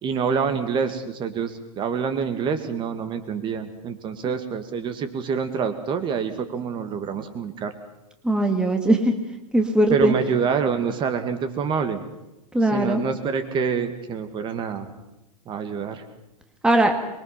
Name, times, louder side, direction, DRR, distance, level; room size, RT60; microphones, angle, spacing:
voice 1, 0.0-7.7 9.9-12.0 12.6-14.9 15.5-16.0, right 6 dB, 25° right, 8 dB, 2.0 m, -26 dB
voice 2, 8.2-9.1 9.5-10.1 12.5-13.0 16.6-16.9, right 1 dB, 5° right, 4 dB, 1.9 m, -19 dB
26.0 x 22.5 x 5.9 m, 0.95 s
hypercardioid pair, 145°, 20 cm